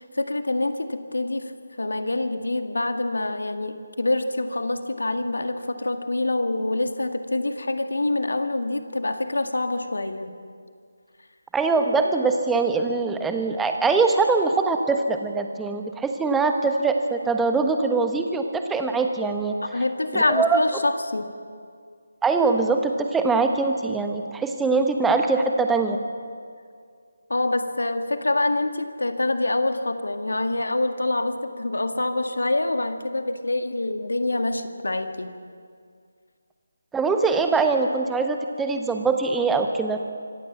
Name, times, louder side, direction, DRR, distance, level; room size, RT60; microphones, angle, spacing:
voice 1, 0.0-1.5 1.8-10.3 19.6-21.3 27.3-35.3, left 2 dB, 70° left, 7 dB, 1.8 m, -26 dB
voice 2, 11.5-19.5 20.1-20.6 22.2-26.0 36.9-40.0, right 4 dB, 5° right, 5 dB, 1.2 m, -22 dB
25.5 x 15.5 x 7.3 m, 2.1 s
figure-of-eight pair, 155°, 0 cm